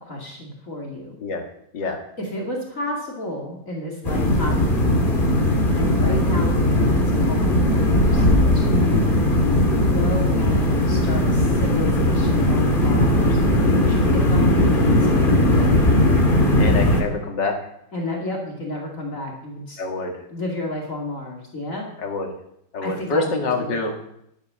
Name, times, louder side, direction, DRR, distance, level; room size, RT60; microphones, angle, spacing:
voice 1, 0.0-1.1 2.2-5.3 5.7-8.3 8.5-9.2 9.9-13.4 13.7-15.9 17.9-19.8 20.3-21.9 22.8-23.8, left 1 dB, 50° left, -1 dB, 2.8 m, -31 dB
sound 1, 4.0-17.0, left 1 dB, 30° left, 2.1 m, -18 dB
voice 2, 16.6-17.6 19.8-20.2 22.0-22.3 22.7-24.0, left 3 dB, 80° left, 3 dB, 2.6 m, -26 dB
11.5 x 8.5 x 6.9 m, 0.73 s
omnidirectional pair, 1.9 m